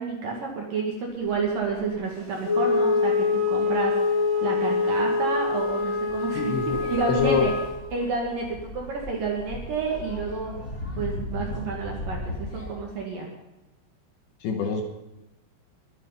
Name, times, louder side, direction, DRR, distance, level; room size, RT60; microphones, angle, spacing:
voice 1, 0.0-6.5 6.8-7.5 7.9-10.5 10.9-13.3, right 4 dB, 55° right, -1 dB, 2.7 m, -30 dB
sound 1, 1.1-12.7, left 1 dB, 35° left, 1.5 m, -39 dB
Wind instrument woodwind instrument, 2.4-7.7, left 4 dB, 5° left, 4.0 m, -25 dB
voice 2, 6.3-6.8 7.2-7.5 14.4-14.8, left 5 dB, 70° left, 4 dB, 3.1 m, -25 dB
22.0 x 8.2 x 5.6 m, 0.97 s
omnidirectional pair, 6.0 m